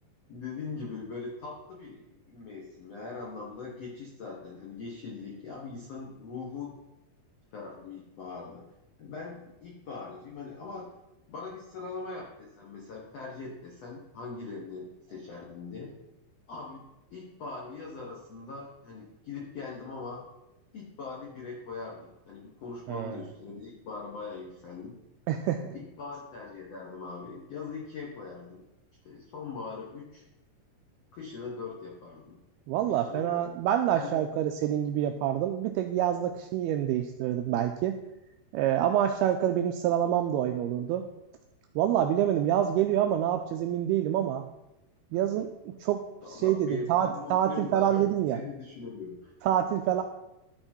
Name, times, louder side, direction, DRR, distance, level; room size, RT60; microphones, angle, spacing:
voice 1, 0.3-6.7 7.5-8.7 9.0-10.9 11.3-15.9 16.5-16.8 17.1-20.2 20.7-24.9 25.7-28.6 29.0-30.2 31.1-32.4 32.9-33.5 33.9-34.2 46.2-48.0 48.3-49.3, left 4 dB, 75° left, -3 dB, 1.4 m, -41 dB
voice 2, 22.9-23.2 25.3-25.7 32.7-38.0 38.5-41.0 41.8-44.4 45.1-46.0 46.3-48.4 49.4-50.0, right 11 dB, 85° right, 5 dB, 2.2 m, -27 dB
13.0 x 4.8 x 4.5 m, 0.94 s
omnidirectional pair, 4.9 m